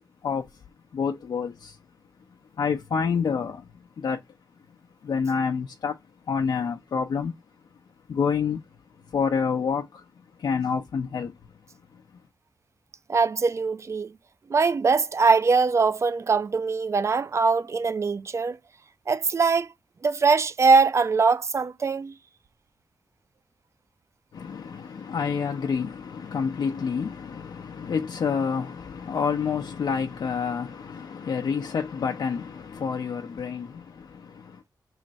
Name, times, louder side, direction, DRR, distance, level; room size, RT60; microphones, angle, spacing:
voice 1, 0.2-0.6 0.9-1.8 2.6-4.2 5.0-6.0 6.3-7.3 8.1-8.6 9.1-11.3 11.9-12.2 24.3-34.6, left 6 dB, 80° left, 0.5 m, -28 dB
voice 2, 13.1-14.1 14.5-18.6 19.1-19.7 20.0-22.1, right 4 dB, 40° right, 0.3 m, -22 dB
3.2 x 2.5 x 4.0 m
wide cardioid pair, 95°, 7 cm